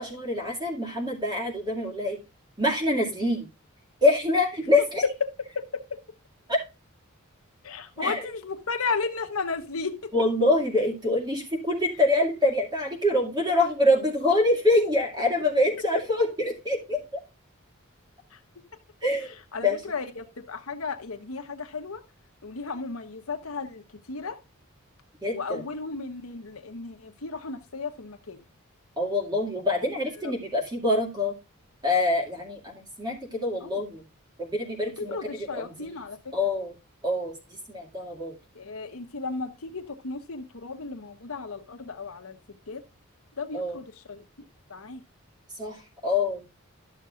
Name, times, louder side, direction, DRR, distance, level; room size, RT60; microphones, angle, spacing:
voice 1, 0.0-2.2 2.6-3.5 4.0-5.0 6.5-6.6 8.0-8.2 10.1-17.0 19.0-19.4 19.6-19.8 25.2-25.6 29.0-31.4 31.8-34.0 34.4-35.2 35.5-35.9 36.3-36.7 37.0-37.3 37.7-38.4 43.5-43.8 45.6-46.4, left 2 dB, 20° right, 2.3 m, -25 dB
voice 2, 7.6-10.1 19.5-22.0 22.4-23.8 24.1-24.4 25.3-28.4 33.6-33.7 35.0-36.3 38.5-42.4 42.7-42.8 43.4-44.2 44.7-45.0, left 4 dB, 80° left, 1.2 m, -34 dB
12.5 x 6.8 x 2.5 m
head